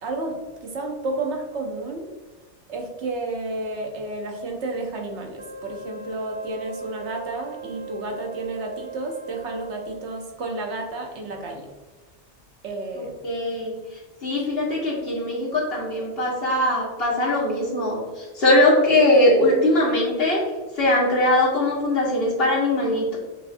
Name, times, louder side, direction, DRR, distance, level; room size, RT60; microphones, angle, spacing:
voice 1, 0.0-2.1 2.7-11.7 12.6-13.1, right 2 dB, 70° right, 2 dB, 1.0 m, -31 dB
Wind instrument woodwind instrument, 5.4-10.1, right 5 dB, 40° right, 0.4 m, -39 dB
voice 2, 12.9-13.8 14.2-20.4 20.8-23.2, left 1 dB, 55° left, -5 dB, 1.5 m, -21 dB
7.3 x 2.5 x 2.5 m, 1.2 s
omnidirectional pair, 1.2 m